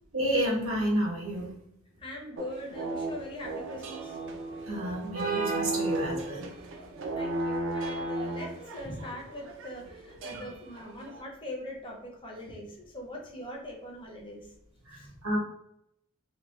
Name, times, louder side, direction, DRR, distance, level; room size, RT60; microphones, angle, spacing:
voice 1, 0.1-1.5 4.7-6.5 8.8-8.9 14.8-15.4, right 1 dB, 85° right, -4 dB, 1.0 m, -30 dB
voice 2, 2.0-4.2 7.1-14.5 14.9-15.1, left 1 dB, 25° left, 0 dB, 0.5 m, -42 dB
sound 1, 2.4-11.2, right 2 dB, 60° right, 0.4 m, -36 dB
2.5 x 2.1 x 3.0 m, 0.77 s
head